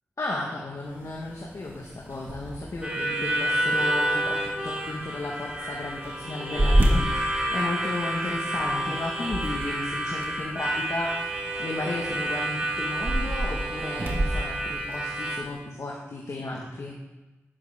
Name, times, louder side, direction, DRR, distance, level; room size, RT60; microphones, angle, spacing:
voice 1, 0.2-11.2 11.6-16.9, left 2 dB, 70° left, -3 dB, 1.6 m, -34 dB
sound 1, 0.8-15.6, right 1 dB, 45° right, 2.1 m, -31 dB
Harmonica, 2.8-15.4, right 1 dB, 20° right, 3.3 m, -30 dB
sound 2, 2.8-7.8, right 3 dB, 80° right, 2.0 m, -43 dB
11.0 x 9.5 x 3.7 m, 1.1 s
cardioid pair, 40°, 5 cm